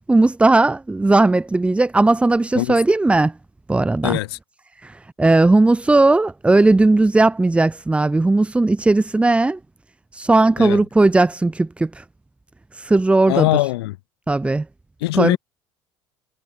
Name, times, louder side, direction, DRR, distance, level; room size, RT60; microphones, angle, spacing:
voice 1, 0.1-3.3 3.7-4.2 4.8-9.6 10.1-12.0 12.7-13.5 14.3-14.7 15.1-15.4, right 2 dB, 10° right, 0.5 m, -17 dB
voice 2, 4.0-4.4 10.6-10.8 13.3-14.0 15.0-15.4, left 18 dB, 70° left, 0.5 m, -21 dB
figure-of-eight pair, 65°, 14 cm